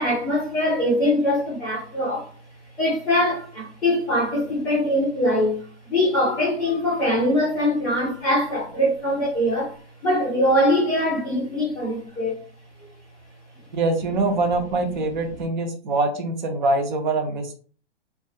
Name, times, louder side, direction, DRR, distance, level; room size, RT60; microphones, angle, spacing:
voice 1, 0.0-2.3 2.8-12.4, left 1 dB, 10° left, 0.6 m, -22 dB
voice 2, 13.7-17.5, right 2 dB, 45° right, 0.6 m, -24 dB
2.3 x 2.2 x 2.7 m
hypercardioid pair, 170°, 34 cm